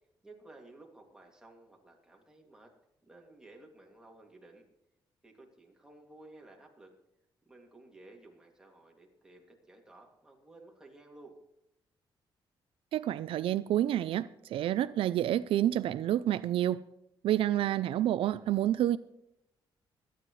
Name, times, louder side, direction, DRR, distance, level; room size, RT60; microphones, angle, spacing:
voice 1, 0.2-2.7 3.0-4.6 5.2-6.9 7.4-11.4, right 2 dB, 5° right, 2.5 m, -55 dB
voice 2, 12.9-16.8 17.2-19.0, right 12 dB, 85° right, 0.4 m, -29 dB
25.0 x 9.3 x 3.2 m
cardioid pair, 130°, 9 cm